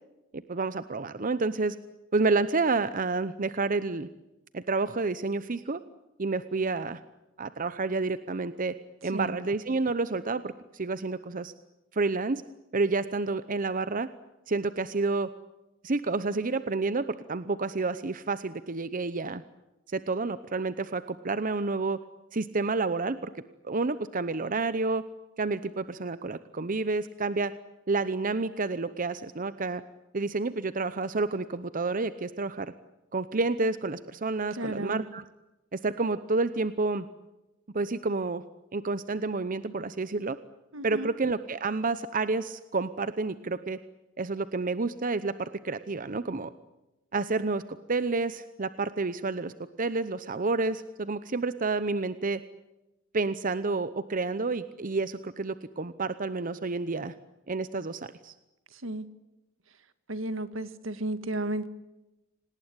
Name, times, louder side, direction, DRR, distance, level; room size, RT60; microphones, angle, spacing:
voice 1, 0.3-1.8 2.1-4.1 4.5-5.8 6.2-7.0 7.4-8.7 9.0-11.5 11.9-12.4 12.7-14.1 14.5-15.3 15.8-19.4 19.9-22.0 22.3-23.3 23.6-25.0 25.4-27.5 27.9-29.8 30.1-32.7 33.1-35.2 35.7-37.1 37.7-38.4 38.7-40.4 40.8-43.8 44.2-46.5 47.1-47.6 47.9-49.5 49.8-52.4 53.1-57.1 57.5-58.3, right 3 dB, 40° right, 0.8 m, -29 dB
voice 2, 34.6-35.0 40.7-41.1 58.8-59.0 60.1-61.7, right 1 dB, 70° right, 1.8 m, -33 dB
27.0 x 19.0 x 9.8 m
head